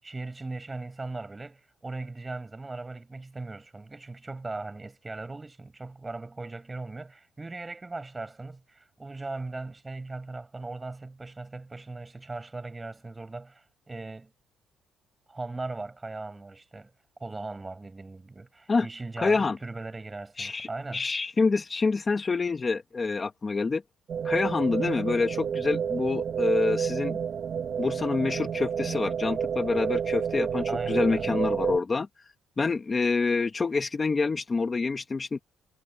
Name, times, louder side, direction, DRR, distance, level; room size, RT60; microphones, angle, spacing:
voice 1, 0.0-14.3 15.3-16.9 17.2-21.0 30.7-31.4, right 3 dB, 15° right, 7.3 m, -38 dB
voice 2, 19.2-19.6 20.4-23.8 24.2-27.2 27.8-32.1 32.6-35.4, left 4 dB, 25° left, 1.5 m, -27 dB
sound 1, 24.1-31.8, right 7 dB, 50° right, 1.5 m, -30 dB
cardioid pair, 120°, 0 cm